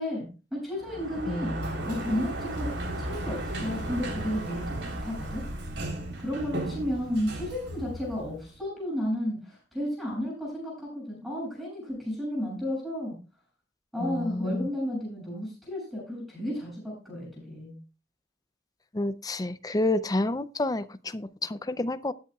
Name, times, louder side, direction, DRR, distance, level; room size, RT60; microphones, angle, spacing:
voice 1, 0.0-1.6 1.9-5.4 6.2-13.1 13.9-17.8, left 1 dB, ahead, -5 dB, 7.5 m, -33 dB
Sliding door, 0.8-8.6, right 1 dB, 85° right, 3.6 m, -35 dB
voice 2, 1.3-2.0 14.0-14.7 18.9-22.1, left 2 dB, 20° left, 13 dB, 0.5 m, -29 dB
20.0 x 8.5 x 2.4 m, 0.33 s
head